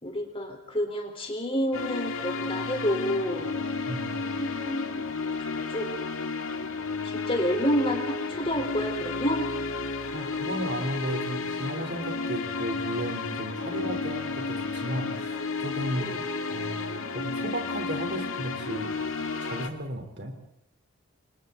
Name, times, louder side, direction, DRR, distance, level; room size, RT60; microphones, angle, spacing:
voice 1, 0.0-3.5 4.4-5.0 5.4-5.9 7.0-9.5 13.7-13.9 16.0-16.2, equal, 25° left, 3 dB, 4.2 m, -29 dB
sound 1, 1.7-19.7, left 4 dB, 70° left, 2.1 m, -32 dB
voice 2, 3.9-4.2 10.1-16.2 16.5-19.0 19.4-20.4, right 1 dB, 50° right, 4 dB, 3.7 m, -34 dB
29.5 x 24.5 x 4.0 m, 0.79 s
head